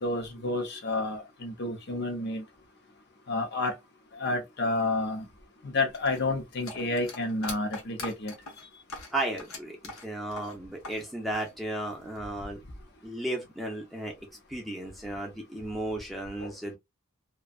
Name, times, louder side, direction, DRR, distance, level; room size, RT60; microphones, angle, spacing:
voice 1, 0.0-2.4 3.3-3.7 4.1-5.3 5.6-8.3 16.4-16.5, left 2 dB, 50° left, 0.7 m, -30 dB
sound 1, 5.9-11.0 11.3-12.2, left 3 dB, 75° left, 1.0 m, -42 dB
voice 2, 9.1-12.6 13.0-14.1 14.5-16.8, right 1 dB, ahead, 0.6 m, -34 dB
2.6 x 2.3 x 2.3 m
head